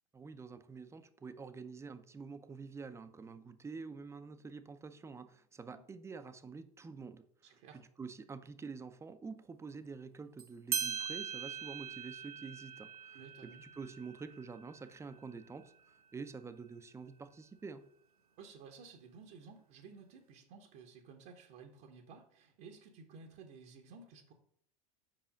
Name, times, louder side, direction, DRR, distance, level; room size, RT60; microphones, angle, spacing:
voice 1, 0.1-7.2 7.7-13.2 13.6-15.7 16.1-17.8, right 4 dB, 15° right, 10 dB, 0.6 m, -47 dB
voice 2, 7.4-7.8 13.1-13.6 18.4-24.3, right 5 dB, 55° right, 1 dB, 1.0 m, -54 dB
sound 1, 10.4-10.5 10.7-15.8, right 7 dB, 85° right, 0.8 m, -42 dB
5.1 x 4.9 x 5.1 m, 0.62 s
hypercardioid pair, 80°, 19 cm